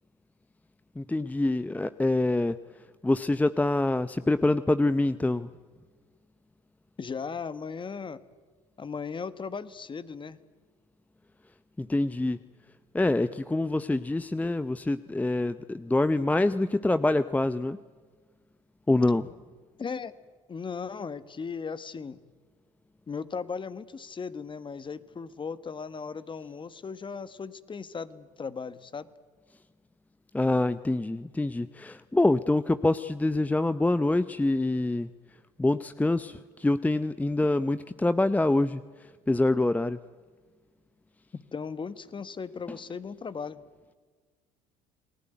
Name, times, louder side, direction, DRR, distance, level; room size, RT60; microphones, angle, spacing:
voice 1, 1.0-2.6 3.0-5.5 11.8-12.4 12.9-17.8 18.9-19.3 30.3-35.1 35.6-40.0 42.7-42.8, left 2 dB, 10° left, 13 dB, 0.7 m, -25 dB
voice 2, 7.0-8.2 8.8-10.4 19.8-20.1 20.5-22.2 23.1-29.1 41.3-43.6, left 5 dB, 30° left, 14 dB, 1.5 m, -37 dB
29.5 x 20.0 x 9.3 m, 1.5 s
hypercardioid pair, 65°, 17 cm